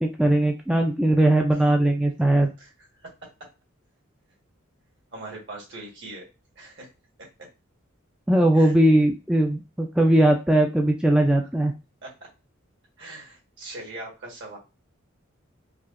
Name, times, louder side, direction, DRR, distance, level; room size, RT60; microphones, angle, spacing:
voice 1, 0.0-2.5 8.3-11.7, right 1 dB, 5° right, 2 dB, 0.3 m, -20 dB
voice 2, 5.1-6.3 6.5-6.9 7.4-7.5 8.5-8.7 12.0-12.1 13.0-14.6, right 2 dB, 60° right, -2 dB, 1.6 m, -40 dB
4.6 x 2.4 x 2.5 m, 0.29 s
head